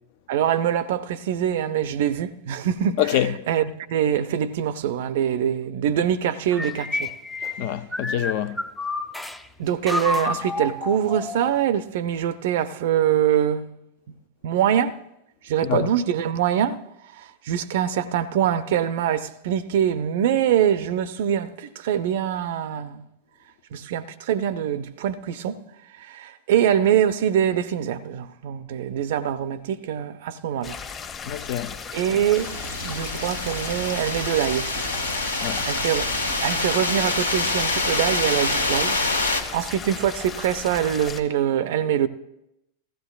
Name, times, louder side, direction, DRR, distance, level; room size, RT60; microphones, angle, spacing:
voice 1, 0.3-7.1 9.6-13.7 14.4-15.0 15.4-16.8 17.1-23.0 23.7-25.6 26.0-30.8 31.9-32.5 32.8-34.8 35.7-36.1 36.4-42.1, right 10 dB, 55° right, 0.5 m, -24 dB
voice 2, 3.0-3.3 7.6-8.6 15.6-15.9 31.3-31.7 35.4-35.6, left 11 dB, 45° left, 0.6 m, -25 dB
sound 1, 6.5-9.4 9.9-11.7, left 2 dB, ahead, 0.6 m, -29 dB
sound 2, 30.6-41.2, left 6 dB, 25° left, 1.1 m, -36 dB
sound 3, 32.3-39.4, left 2 dB, 80° left, 1.2 m, -26 dB
16.0 x 15.5 x 2.3 m
figure-of-eight pair, 90°, 0 cm